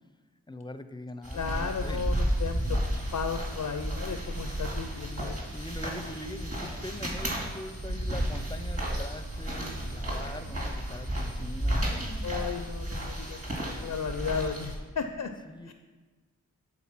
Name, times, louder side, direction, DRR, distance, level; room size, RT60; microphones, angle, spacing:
voice 1, 0.5-2.3 4.2-4.3 5.5-12.4 15.5-15.7, left 1 dB, 15° left, 10 dB, 0.5 m, -42 dB
sound 1, 1.2-14.8, equal, 45° right, 2.4 m, -33 dB
voice 2, 1.3-2.8 3.1-5.4 12.2-13.4 13.8-15.3 15.6-15.7, left 6 dB, 70° left, 7 dB, 0.5 m, -34 dB
sound 2, 1.7-12.5, right 2 dB, 70° right, 0.8 m, -44 dB
8.7 x 3.9 x 5.9 m, 1.3 s
cardioid pair, 40°, 32 cm